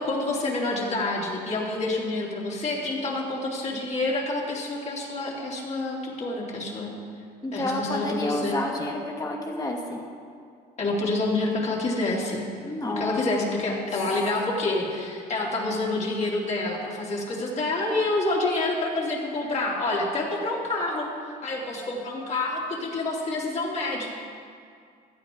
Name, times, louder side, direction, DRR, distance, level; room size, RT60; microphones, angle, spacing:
voice 1, 0.0-6.9 7.5-8.6 10.8-12.5 12.9-21.1 21.4-24.1, left 2 dB, 40° left, -3 dB, 3.2 m, -28 dB
voice 2, 7.4-10.0 12.6-13.9, left 2 dB, 20° left, 0 dB, 2.1 m, -30 dB
16.5 x 12.0 x 3.9 m, 2.2 s
cardioid pair, 110°, 17 cm